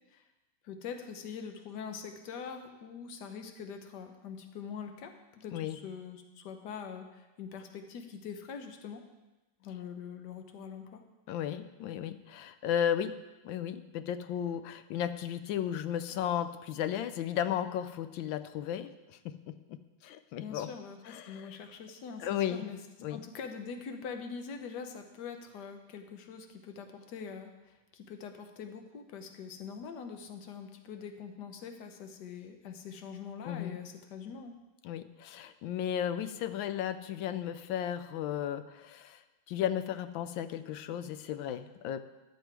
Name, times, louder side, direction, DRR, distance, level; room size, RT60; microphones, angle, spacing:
voice 1, 0.6-5.1 5.4-9.0 9.6-11.0 20.4-22.8 23.1-34.6, left 6 dB, 65° left, 6 dB, 1.4 m, -43 dB
voice 2, 11.3-13.2 13.4-20.7 21.1-21.6 22.2-22.7 23.0-23.2 33.4-33.8 34.8-39.2 39.5-42.0, left 10 dB, 85° left, 11 dB, 1.4 m, -35 dB
12.0 x 7.4 x 4.6 m, 1.1 s
omnidirectional pair, 2.1 m